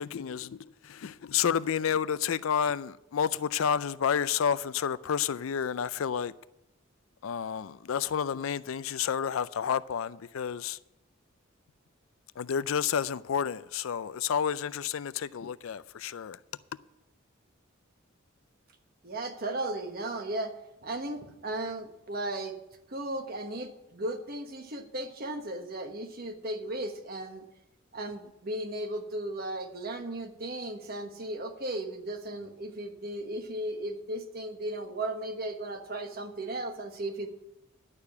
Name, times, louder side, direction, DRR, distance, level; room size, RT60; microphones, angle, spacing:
voice 1, 0.0-6.3 7.2-10.8 12.4-16.4, left 7 dB, 80° left, 0.4 m, -30 dB
voice 2, 19.0-20.5 20.8-22.5 22.9-27.4 27.9-37.3, right 1 dB, 45° right, 1.3 m, -36 dB
11.0 x 6.8 x 7.1 m
head